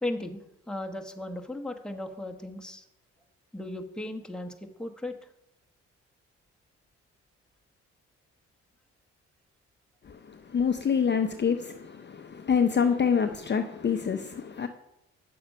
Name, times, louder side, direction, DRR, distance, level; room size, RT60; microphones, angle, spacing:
voice 1, 0.0-2.8 3.5-4.5 4.8-5.1, left 1 dB, ahead, 1.2 m, -36 dB
voice 2, 10.0-14.7, left 6 dB, 35° left, 0.7 m, -26 dB
8.6 x 6.7 x 5.4 m
supercardioid pair, 60°, 30 cm